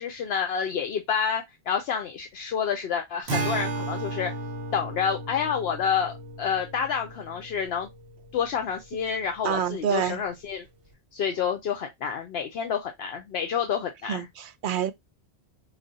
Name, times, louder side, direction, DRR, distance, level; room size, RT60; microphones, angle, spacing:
voice 1, 0.0-4.3 4.7-7.9 8.3-10.6 11.1-14.3, left 7 dB, 70° left, 0.8 m, -29 dB
Acoustic guitar, 3.3-8.8, right 2 dB, 75° right, 1.1 m, -34 dB
voice 2, 9.4-10.2 14.1-14.9, right 9 dB, 60° right, 0.6 m, -27 dB
4.8 x 2.5 x 2.5 m
omnidirectional pair, 1.1 m